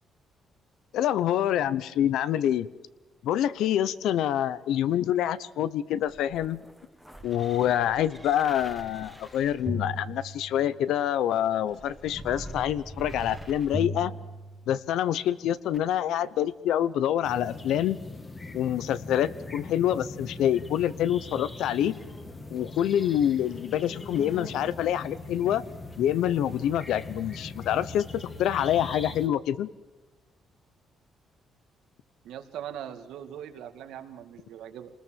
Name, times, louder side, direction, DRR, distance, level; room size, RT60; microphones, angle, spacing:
voice 1, 0.9-2.7 3.2-6.6 7.2-14.1 14.7-18.0 18.5-22.0 22.5-25.6 26.0-28.0 28.4-29.7, left 11 dB, 80° left, 17 dB, 0.9 m, -26 dB
sound 1, 6.0-10.9 11.7-15.0 15.7-15.8, left 1 dB, ahead, 1.6 m, -39 dB
sound 2, 17.2-29.3, left 2 dB, 20° left, 1.9 m, -41 dB
voice 2, 32.2-34.9, right 10 dB, 90° right, 7 dB, 2.2 m, -40 dB
27.0 x 20.5 x 7.6 m, 1.2 s
cardioid pair, 160°, 0 cm